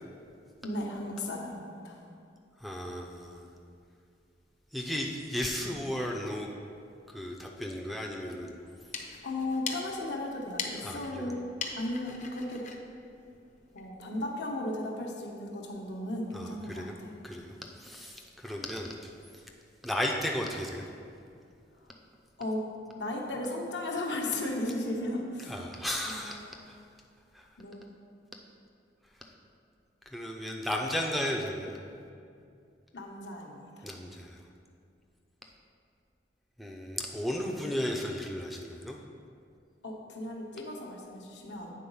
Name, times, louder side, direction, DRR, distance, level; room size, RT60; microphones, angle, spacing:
voice 1, 0.6-2.0 9.2-11.4 11.8-12.6 13.7-17.1 22.4-22.6 22.9-25.5 26.0-26.5 27.6-28.0 32.9-33.9 39.8-41.7, left 1 dB, 70° left, 0 dB, 1.0 m, -35 dB
voice 2, 2.6-3.5 4.7-6.5 7.1-8.6 10.8-11.3 16.3-16.9 17.2-19.4 19.8-20.9 25.4-26.4 26.7-26.8 27.3-27.5 30.1-31.8 33.8-34.5 36.6-39.0, equal, ahead, 0 dB, 0.4 m, -35 dB
sound 1, 8.6-13.9, left 5 dB, 40° left, 0.7 m, -42 dB
8.4 x 4.0 x 5.4 m, 2.4 s
head